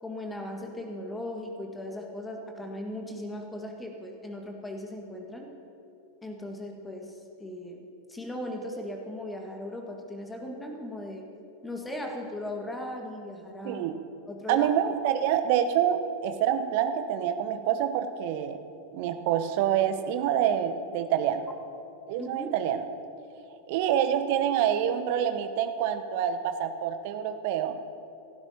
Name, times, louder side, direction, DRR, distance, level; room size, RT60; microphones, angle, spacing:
voice 1, 0.0-5.5 6.2-11.2 11.6-13.8 14.3-14.7 22.2-22.5, left 1 dB, 10° left, 2 dB, 1.8 m, -38 dB
voice 2, 14.5-18.6 18.9-21.5 22.1-22.8 23.7-27.8, right 9 dB, 50° right, 8 dB, 0.9 m, -27 dB
28.0 x 12.0 x 2.9 m, 2.7 s
figure-of-eight pair, 90°, 0 cm